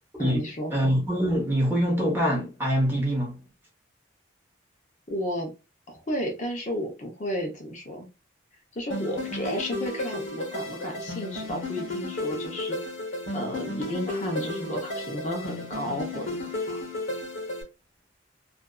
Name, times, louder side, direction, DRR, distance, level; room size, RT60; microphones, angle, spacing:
voice 1, 0.2-0.7 5.1-5.5 5.9-8.1 8.8-12.8 13.3-16.8, equal, 40° left, 0.7 m, -32 dB
voice 2, 0.7-3.4, equal, 10° right, 0.7 m, -24 dB
sound 1, 8.9-17.6, left 2 dB, 80° left, 0.9 m, -33 dB
2.6 x 2.3 x 2.2 m
head